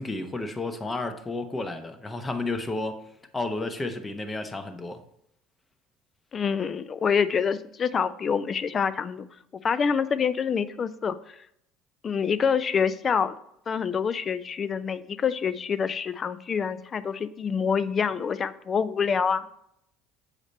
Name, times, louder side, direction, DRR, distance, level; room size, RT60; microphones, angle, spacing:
voice 1, 0.0-3.0 3.3-5.0, left 2 dB, 20° left, 0.8 m, -32 dB
voice 2, 6.3-9.3 9.6-11.4 12.0-13.3 13.7-19.5, left 6 dB, 35° left, 0.4 m, -26 dB
6.6 x 4.9 x 4.1 m
supercardioid pair, 95°, 0 cm